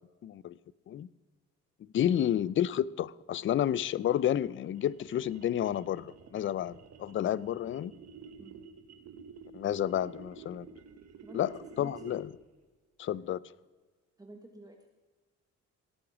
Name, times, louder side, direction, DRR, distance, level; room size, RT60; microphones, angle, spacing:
voice 1, 0.2-0.6 0.9-1.1 1.9-7.9 9.5-10.7 11.3-12.3 13.0-13.4, left 11 dB, 45° left, 0.4 m, -30 dB
sound 1, 3.8-12.4, right 6 dB, 60° right, 1.3 m, -51 dB
voice 2, 8.4-8.7 11.2-12.3 14.2-14.9, right 2 dB, 10° right, 1.3 m, -51 dB
17.0 x 8.6 x 6.0 m
cardioid pair, 90°, 30 cm